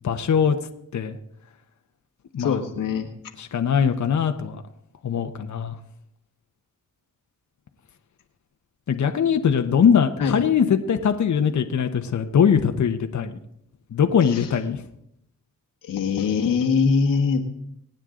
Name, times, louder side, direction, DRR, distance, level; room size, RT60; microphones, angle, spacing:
voice 1, 0.0-0.6 0.9-1.2 2.3-2.6 3.4-4.6 5.0-5.8 8.9-13.4 13.9-14.8, left 7 dB, 60° left, 6 dB, 1.1 m, -21 dB
voice 2, 2.4-3.1 10.2-10.4 14.3-14.4 15.8-17.4, left 5 dB, 85° left, 2 dB, 1.6 m, -22 dB
25.0 x 9.0 x 3.8 m, 0.77 s
cardioid pair, 60°, 33 cm